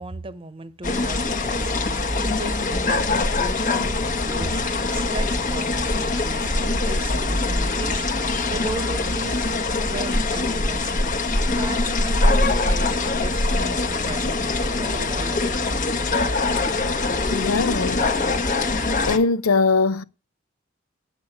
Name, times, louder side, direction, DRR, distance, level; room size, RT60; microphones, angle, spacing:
voice 1, 0.0-8.1 8.5-9.4 9.8-15.5, right 3 dB, 25° right, 1.0 m, -36 dB
sound 1, 0.8-19.2, left 2 dB, 40° left, 1.3 m, -23 dB
voice 2, 17.3-18.1 19.0-20.0, left 4 dB, 85° left, 0.7 m, -21 dB
9.0 x 8.8 x 8.9 m
head